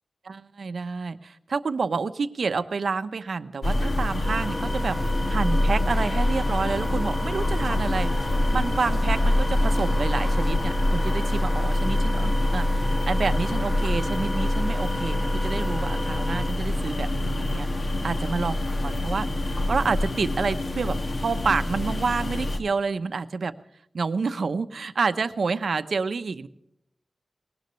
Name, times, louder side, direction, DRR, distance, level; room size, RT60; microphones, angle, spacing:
voice 1, 0.2-18.6 18.8-23.6 23.9-26.5, right 4 dB, 65° right, 10 dB, 0.9 m, -29 dB
sound 1, 3.6-22.6, left 1 dB, 45° left, 1.6 m, -25 dB
Wind instrument woodwind instrument, 4.2-16.5, equal, ahead, 0.6 m, -36 dB
19.5 x 18.5 x 3.2 m, 0.75 s
wide cardioid pair, 125°, 0 cm